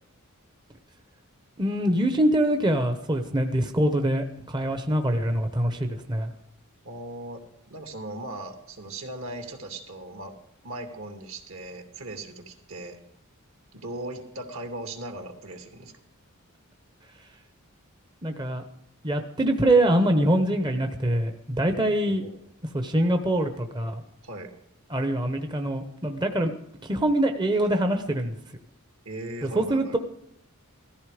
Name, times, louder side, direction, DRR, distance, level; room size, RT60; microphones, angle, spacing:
voice 1, 1.6-6.3 18.2-18.6 19.0-22.2 22.7-24.0 24.9-26.5 26.8-28.3 29.4-30.0, right 1 dB, 20° right, 6 dB, 0.9 m, -24 dB
voice 2, 6.8-10.4 10.6-13.0 13.7-15.9 21.9-22.4 24.2-24.5 29.0-30.0, right 2 dB, 70° right, 4 dB, 2.8 m, -38 dB
17.5 x 14.5 x 5.0 m, 0.80 s
head